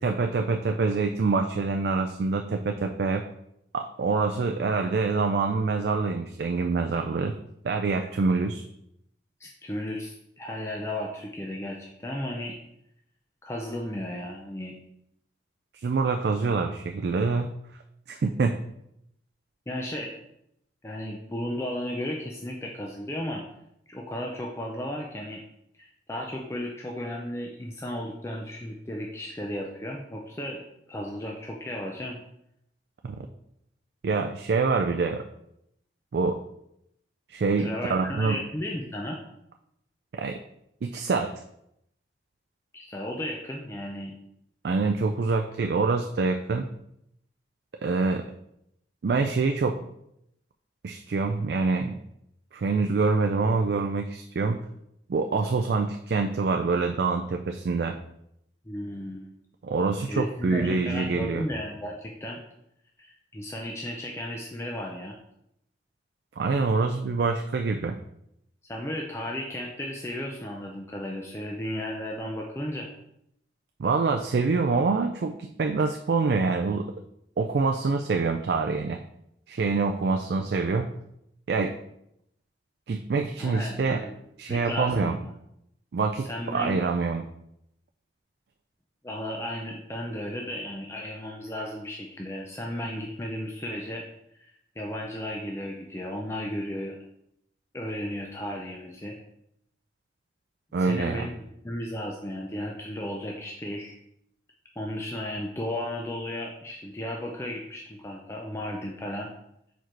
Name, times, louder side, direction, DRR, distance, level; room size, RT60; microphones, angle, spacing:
voice 1, 0.0-3.3 3.7-7.3 7.6-8.6 15.8-17.5 18.1-18.6 33.0-33.2 34.0-35.2 36.1-36.4 37.3-38.4 40.1-40.4 40.8-41.3 44.6-46.7 47.8-48.3 49.0-49.8 50.8-52.0 52.5-54.6 55.1-58.0 59.6-61.4 66.4-68.0 73.8-76.9 77.4-79.0 79.5-80.9 81.5-81.7 82.9-84.1 84.4-85.2 85.9-87.2 100.7-101.3, right 4 dB, 60° right, 4 dB, 0.4 m, -25 dB
voice 2, 9.4-12.6 13.4-14.7 19.7-20.1 20.8-23.4 23.9-25.4 25.8-30.6 30.9-32.2 37.6-39.2 42.7-44.1 58.7-59.3 60.1-62.4 63.0-65.2 68.6-72.9 83.4-84.1 84.5-85.3 86.2-86.8 89.0-94.0 94.4-97.0 97.7-99.2 100.8-104.0 104.8-109.3, left 1 dB, 15° left, -1 dB, 0.5 m, -34 dB
4.7 x 4.5 x 4.5 m, 0.77 s
head